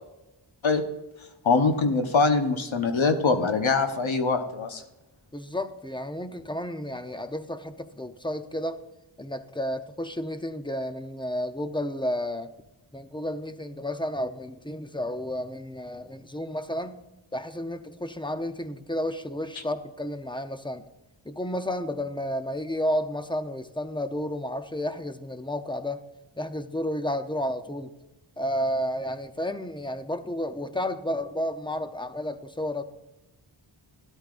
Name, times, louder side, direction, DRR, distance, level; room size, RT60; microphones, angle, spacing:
voice 1, 1.4-4.8, left 4 dB, 75° left, 6 dB, 1.2 m, -23 dB
voice 2, 5.3-8.8 9.2-12.5 12.9-16.9 17.3-20.8 21.2-26.0 26.4-27.9 28.4-32.8, left 1 dB, 10° left, 9 dB, 0.6 m, -31 dB
13.0 x 11.0 x 2.5 m, 1.0 s
wide cardioid pair, 75°, 48 cm